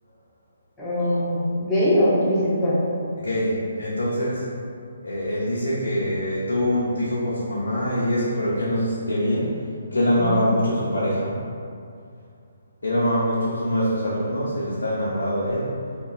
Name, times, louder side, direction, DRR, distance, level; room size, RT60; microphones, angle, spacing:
voice 1, 0.8-2.8 10.2-10.4, left 1 dB, 10° left, -10 dB, 0.7 m, -21 dB
voice 2, 3.2-4.5 5.0-9.6 9.9-11.4 12.8-15.8, equal, 70° left, -7 dB, 0.5 m, -24 dB
2.8 x 2.2 x 3.7 m, 2.4 s
figure-of-eight pair, 135°, 0 cm